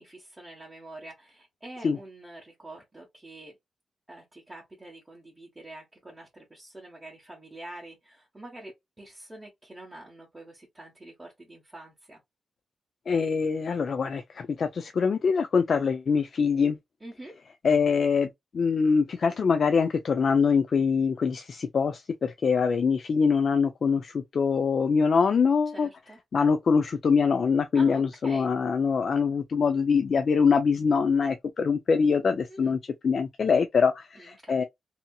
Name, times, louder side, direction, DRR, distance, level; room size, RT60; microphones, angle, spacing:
voice 1, 0.0-3.6 4.1-12.2 17.0-17.4 25.6-26.2 27.7-28.5 32.4-32.8 34.1-34.7, right 1 dB, 20° right, 1.0 m, -46 dB
voice 2, 13.1-16.8 17.6-25.9 26.3-32.8 33.0-34.6, left 5 dB, 60° left, 0.3 m, -24 dB
2.7 x 2.6 x 2.2 m
cardioid pair, 90°, 0 cm